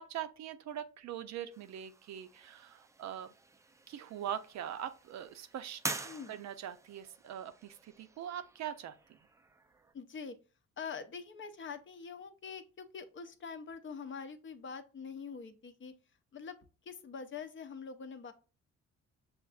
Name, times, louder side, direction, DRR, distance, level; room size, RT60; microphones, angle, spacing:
voice 1, 0.0-3.3 3.9-5.8 6.3-9.2, right 10 dB, 65° right, 0.5 m, -42 dB
sound 1, 1.5-9.9, right 3 dB, 10° right, 0.3 m, -47 dB
voice 2, 6.0-6.3 9.9-10.3 10.8-15.9 16.3-16.6 16.9-18.3, left 5 dB, 40° left, 0.6 m, -44 dB
6.3 x 2.5 x 2.3 m
cardioid pair, 90°, 30 cm